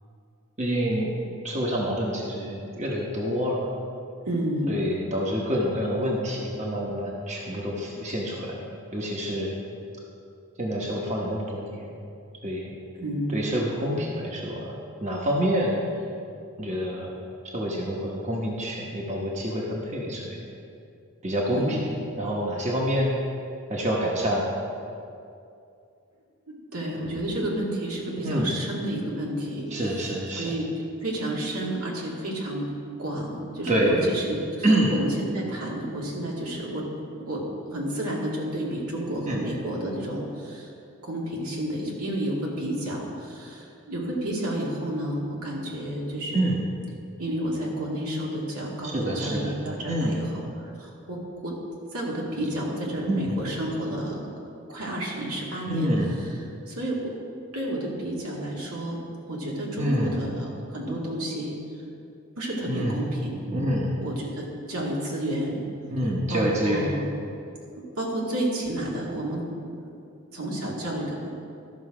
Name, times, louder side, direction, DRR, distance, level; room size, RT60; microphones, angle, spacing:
voice 1, 0.6-3.6 4.7-8.6 8.9-9.5 10.6-11.9 12.4-12.7 13.3-14.7 15.0-15.8 16.6-17.1 17.5-20.4 21.2-21.9 22.2-23.1 23.7-24.4 28.2-28.5 29.7-30.5 33.7-34.0 34.6-34.9 39.3-39.4 46.3-46.6 48.8-49.5 49.9-50.2 52.4-52.5 53.1-53.4 55.7-56.1 59.8-60.2 62.7-63.0 63.5-63.9 65.9-66.9, equal, 30° right, -2 dB, 1.1 m, -27 dB
voice 2, 4.3-4.8 13.0-13.4 21.5-21.9 26.7-30.1 30.4-30.7 31.0-32.7 33.0-36.9 37.3-37.4 37.7-40.7 41.0-46.5 47.2-51.2 51.4-51.5 51.9-54.3 54.7-55.9 56.7-57.1 57.5-59.0 59.3-61.5 62.4-63.3 64.0-65.6 66.3-67.0 67.7-69.4 69.8-70.0 70.3-71.3, right 1 dB, 85° right, -3 dB, 2.2 m, -31 dB
13.0 x 6.3 x 4.9 m, 2.5 s
head